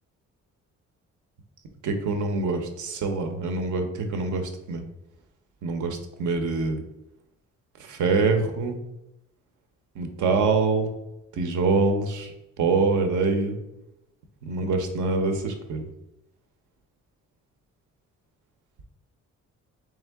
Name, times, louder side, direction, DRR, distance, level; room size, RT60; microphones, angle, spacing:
voice 1, 1.8-4.8 5.6-6.8 7.8-8.8 10.0-10.9 11.4-12.3 12.6-13.6 14.5-15.9, right 4 dB, 75° right, 5 dB, 0.8 m, -25 dB
3.6 x 3.4 x 3.4 m, 0.91 s
cardioid pair, 90°, 30 cm